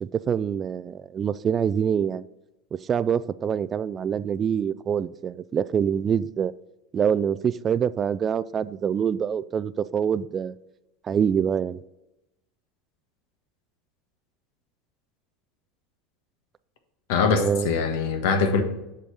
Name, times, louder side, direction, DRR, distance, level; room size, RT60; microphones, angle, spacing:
voice 1, 0.0-2.2 2.9-6.5 6.9-10.5 11.0-11.8 17.4-17.7, right 7 dB, 30° right, 16 dB, 0.3 m, -25 dB
voice 2, 17.1-18.6, left 5 dB, 75° left, 7 dB, 1.5 m, -22 dB
7.7 x 5.2 x 6.2 m, 0.92 s
supercardioid pair, 125°, 0 cm